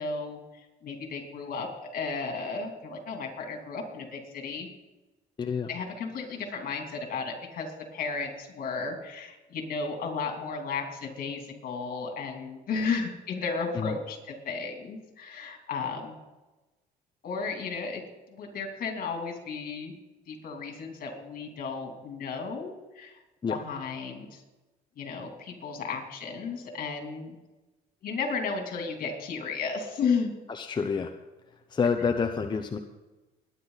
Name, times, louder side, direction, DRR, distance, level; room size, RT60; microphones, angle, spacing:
voice 1, 0.0-4.7 5.7-16.1 17.2-18.0 18.3-19.9 20.3-23.2 23.5-24.4 25.0-27.3 28.0-30.3, left 5 dB, 60° left, 3 dB, 3.1 m, -34 dB
voice 2, 5.4-5.7 13.7-13.9 23.4-23.6 30.5-31.1 31.7-32.8, left 5 dB, 25° left, 6 dB, 0.8 m, -28 dB
21.0 x 9.9 x 4.1 m, 1.1 s
cardioid pair, 110°, 17 cm